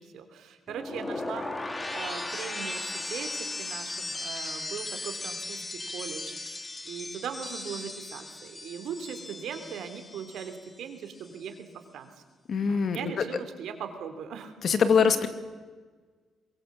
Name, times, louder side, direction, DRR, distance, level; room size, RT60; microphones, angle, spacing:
voice 1, 0.0-1.5 1.9-11.6 11.9-12.1 12.6-14.5 15.0-15.2, right 7 dB, 75° right, 8 dB, 3.2 m, -40 dB
sound 1, 0.7-10.8 11.1-11.5, left 2 dB, 20° left, 2.6 m, -37 dB
voice 2, 12.5-13.0 14.6-15.3, left 6 dB, 55° left, 10 dB, 2.2 m, -22 dB
23.0 x 22.5 x 7.5 m, 1.4 s
cardioid pair, 90°, 0 cm